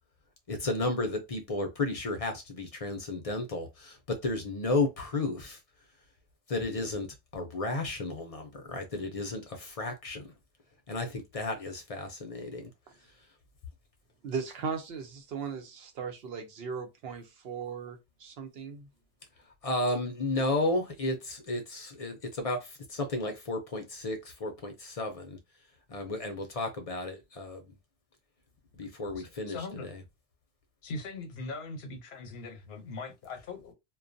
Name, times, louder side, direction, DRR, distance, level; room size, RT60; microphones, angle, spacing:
voice 1, 0.5-5.6 6.5-7.1 7.3-10.2 10.9-12.7 19.6-25.4 25.9-27.7 28.8-29.6 29.9-30.0, left 2 dB, 45° left, 0.5 m, -33 dB
voice 2, 14.2-18.9, right 6 dB, 75° right, 0.9 m, -37 dB
voice 3, 29.2-29.9 30.8-33.7, left 3 dB, 85° left, 0.9 m, -40 dB
2.3 x 2.2 x 2.5 m
omnidirectional pair, 1.0 m